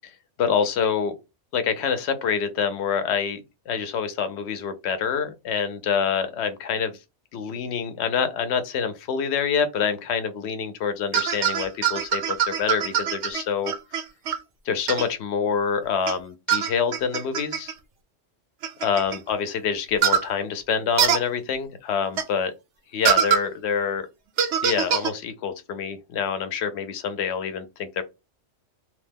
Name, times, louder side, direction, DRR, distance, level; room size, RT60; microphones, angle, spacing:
voice 1, 0.4-1.1 1.5-7.0 7.3-13.7 14.7-17.7 18.8-22.5 22.9-24.1 24.6-28.0, left 6 dB, 70° left, 0.8 m, -26 dB
sound 1, 11.1-14.4 14.9-15.1 16.1-16.2 16.5-17.7 18.6-19.2 20.0-20.3 21.0-21.2 22.2-22.3 23.0-23.4 24.4-25.1, right 9 dB, 70° right, 0.8 m, -23 dB
2.9 x 2.0 x 3.4 m
omnidirectional pair, 1.2 m